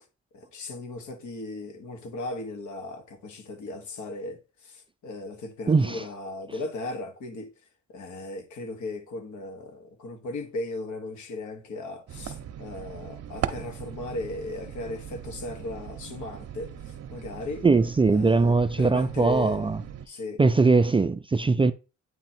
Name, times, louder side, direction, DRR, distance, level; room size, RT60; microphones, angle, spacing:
voice 1, 0.3-7.5 7.9-17.7 18.1-19.7 20.1-20.4, left 2 dB, 70° left, 1.6 m, -37 dB
voice 2, 5.7-6.0 17.6-19.8 20.4-21.7, right 4 dB, 20° right, 0.4 m, -21 dB
sound 1, 12.1-20.1, right 9 dB, 55° right, 0.8 m, -39 dB
9.0 x 3.0 x 4.3 m
cardioid pair, 90°, 30 cm